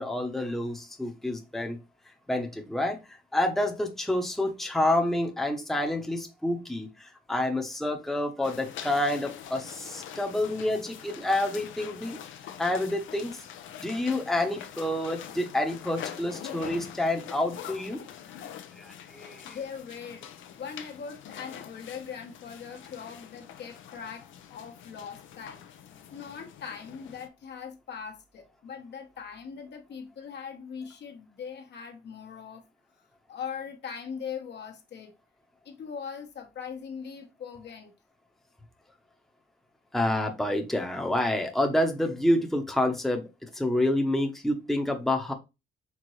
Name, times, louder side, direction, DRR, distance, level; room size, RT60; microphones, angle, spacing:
voice 1, 0.0-1.8 2.1-12.2 12.6-13.4 13.8-18.0 18.7-19.6 39.9-45.3, left 1 dB, ahead, 0.8 m, -28 dB
sound 1, 8.4-27.3, left 9 dB, 75° left, 0.7 m, -44 dB
voice 2, 19.4-20.3 20.6-25.6 26.1-32.6 33.3-35.1 35.6-37.9, left 6 dB, 60° left, 1.2 m, -40 dB
4.5 x 3.7 x 3.1 m
cardioid pair, 90°, 20 cm